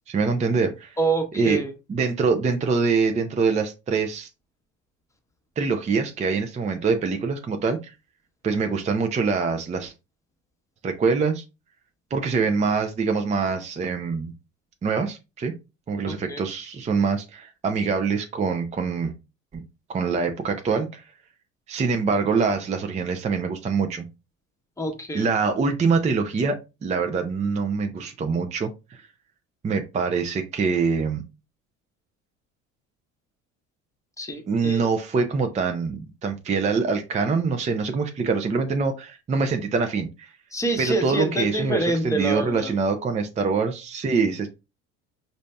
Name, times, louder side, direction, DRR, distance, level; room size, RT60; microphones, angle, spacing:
voice 1, 0.1-1.0 1.3-1.6 1.9-4.3 5.6-7.9 8.4-9.9 10.8-11.4 12.1-14.3 14.8-15.5 15.9-19.1 19.5-19.6 19.9-21.0 21.7-24.1 25.1-26.6 26.8-29.1 29.6-31.2 34.5-40.3 40.8-44.5, right 5 dB, 20° right, 5 dB, 0.5 m, -24 dB
voice 2, 1.0-1.7 16.1-16.4 24.8-25.3 34.2-34.9 40.5-42.8, right 2 dB, 10° left, 4 dB, 0.9 m, -26 dB
5.0 x 2.7 x 2.2 m, 0.27 s
hypercardioid pair, 65°, 40 cm